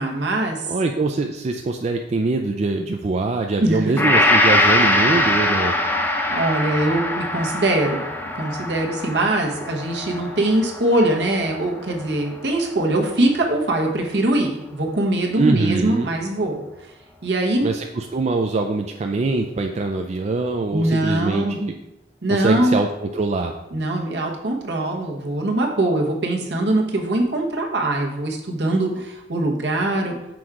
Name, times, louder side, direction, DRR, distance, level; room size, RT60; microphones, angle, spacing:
voice 1, 0.0-0.6 3.6-4.0 6.3-8.0 8.3-16.6 17.2-17.7 20.7-21.6 22.2-22.8 23.7-30.1, right 1 dB, 70° right, 0 dB, 1.1 m, -22 dB
voice 2, 0.7-5.7 15.4-16.1 17.6-21.7 22.3-23.5, right 3 dB, 40° right, 4 dB, 0.3 m, -23 dB
Gong, 4.0-12.3 12.7-12.8, left 1 dB, 10° left, 0.6 m, -22 dB
6.1 x 3.7 x 4.7 m, 0.92 s
head